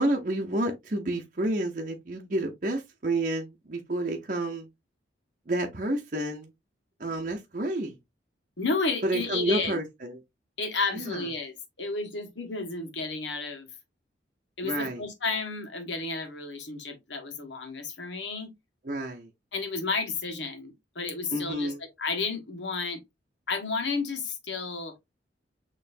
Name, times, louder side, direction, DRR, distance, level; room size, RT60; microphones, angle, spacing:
voice 1, 0.0-4.7 5.5-6.5 7.0-8.0 9.0-10.2 10.9-11.3 14.6-15.0 18.8-19.3 21.3-21.8, right 1 dB, 45° right, 0.7 m, -30 dB
voice 2, 8.6-9.8 10.6-13.7 14.6-18.5 19.5-21.7 22.0-23.0 23.5-24.9, left 4 dB, 80° left, 1.5 m, -32 dB
6.6 x 3.1 x 2.6 m
head